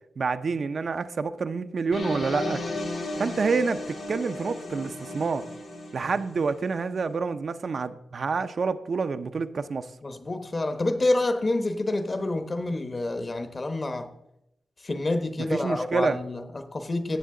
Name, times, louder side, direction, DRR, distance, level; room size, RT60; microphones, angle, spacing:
voice 1, 0.2-2.6 3.2-5.5 5.9-9.9 15.4-16.2, right 4 dB, 60° right, 0.5 m, -28 dB
sound 1, 1.9-6.8, left 1 dB, 75° left, 3.3 m, -34 dB
voice 2, 10.0-14.1 14.8-17.2, left 2 dB, 35° left, 1.0 m, -28 dB
15.0 x 7.7 x 3.8 m
wide cardioid pair, 90°, 0 cm